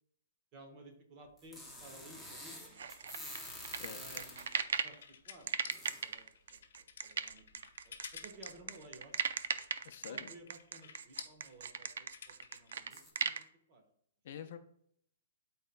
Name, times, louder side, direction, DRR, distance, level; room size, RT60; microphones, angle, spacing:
voice 1, 0.5-2.9 3.9-4.5 4.8-5.8 6.0-9.2 10.1-13.4 13.7-13.8 14.4-14.5, right 2 dB, 25° right, 4 dB, 1.1 m, -56 dB
sound 1, 1.4-4.7 5.7-6.1 7.4-7.5 8.1-8.2 8.6-8.7 12.9-13.1, left 1 dB, 5° right, 0.7 m, -48 dB
sound 2, 2.8-5.0 5.5-13.4, right 7 dB, 70° right, 0.5 m, -37 dB
voice 2, 3.8-4.2 9.8-10.3 14.2-14.6, left 8 dB, 45° left, 8 dB, 0.6 m, -47 dB
sound 3, 4.1-12.7, left 7 dB, 65° left, 0.9 m, -52 dB
12.0 x 4.2 x 2.2 m, 0.67 s
hypercardioid pair, 170°, 0 cm